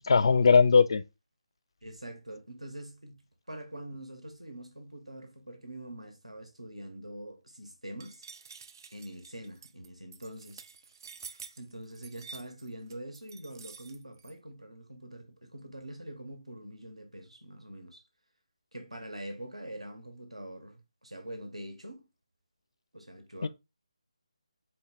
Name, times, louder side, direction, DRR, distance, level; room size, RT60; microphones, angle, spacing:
voice 1, 0.1-1.0 23.4-23.5, left 5 dB, 50° left, 0.3 m, -20 dB
voice 2, 1.8-8.2 8.9-10.6 11.2-18.0 18.7-22.1 22.9-23.5, right 1 dB, 85° right, 1.2 m, -44 dB
sound 1, 8.0-14.3, right 5 dB, 35° right, 0.4 m, -49 dB
4.3 x 2.3 x 4.0 m
figure-of-eight pair, 150°, 3 cm